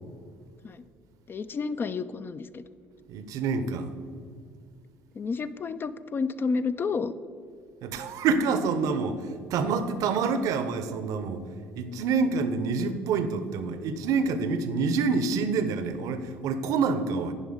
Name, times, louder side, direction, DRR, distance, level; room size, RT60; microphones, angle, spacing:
voice 1, 1.3-2.6 5.1-7.1, left 4 dB, 35° left, 13 dB, 0.4 m, -30 dB
voice 2, 3.1-3.9 7.8-11.4 11.8-17.3, right 4 dB, 65° right, 11 dB, 0.7 m, -27 dB
9.9 x 5.2 x 5.0 m, 2.4 s
hypercardioid pair, 65°, 6 cm